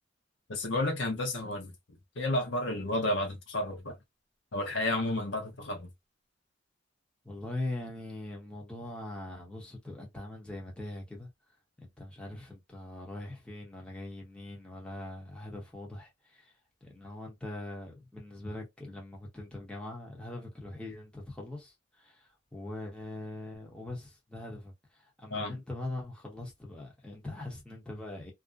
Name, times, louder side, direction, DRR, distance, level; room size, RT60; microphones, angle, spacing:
voice 1, 0.5-1.7 2.2-4.0 4.5-5.9 25.3-25.6, left 1 dB, 70° left, 0.7 m, -31 dB
voice 2, 7.2-11.3 11.8-16.5 16.8-28.3, left 2 dB, 5° left, 0.8 m, -42 dB
2.5 x 2.1 x 2.4 m
head